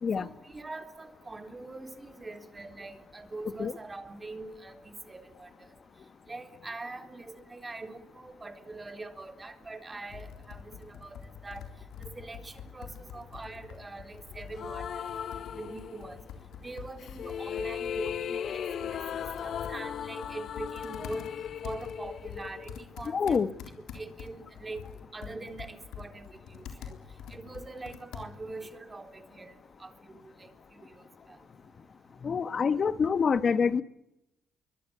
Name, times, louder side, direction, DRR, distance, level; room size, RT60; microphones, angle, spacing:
voice 1, 0.2-5.5 6.3-11.6 12.0-15.1 15.5-16.2 16.6-21.3 21.6-23.4 23.9-26.9 27.3-29.5 29.8-30.9 31.3-31.4, right 3 dB, 25° right, 3.7 m, -43 dB
Computer keyboard, 10.1-28.6, left 7 dB, 85° left, 3.7 m, -46 dB
sound 1, 14.6-16.3 17.0-23.1, left 8 dB, 65° left, 1.0 m, -37 dB
voice 2, 23.1-23.5 32.2-33.8, left 6 dB, 45° left, 1.3 m, -26 dB
29.0 x 23.5 x 8.4 m
cardioid pair, 90°, 0 cm